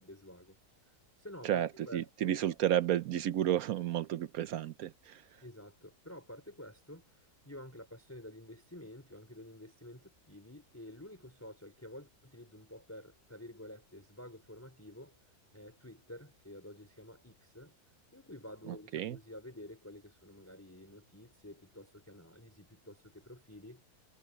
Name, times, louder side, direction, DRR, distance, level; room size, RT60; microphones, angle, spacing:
voice 1, 0.0-2.4 5.4-17.7 18.1-23.8, left 1 dB, 10° left, 4.8 m, -50 dB
voice 2, 1.4-5.2 18.9-19.2, right 11 dB, 70° right, 1.1 m, -32 dB
omnidirectional pair, 1.6 m